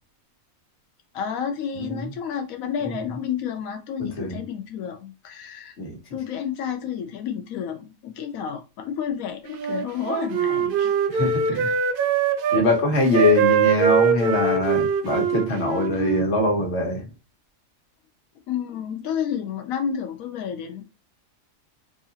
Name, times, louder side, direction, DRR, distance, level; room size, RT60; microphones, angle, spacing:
voice 1, 1.1-5.8 6.1-10.9 11.5-11.7 18.5-20.8, left 8 dB, 90° left, 1.0 m, -30 dB
voice 2, 1.8-2.1 2.8-3.0 4.0-4.4 5.8-6.0 11.1-11.7 12.5-17.0, left 2 dB, 55° left, 1.3 m, -23 dB
Wind instrument woodwind instrument, 9.5-12.6 13.1-16.3, right 6 dB, 65° right, 0.5 m, -22 dB
3.8 x 2.7 x 2.8 m
omnidirectional pair, 1.4 m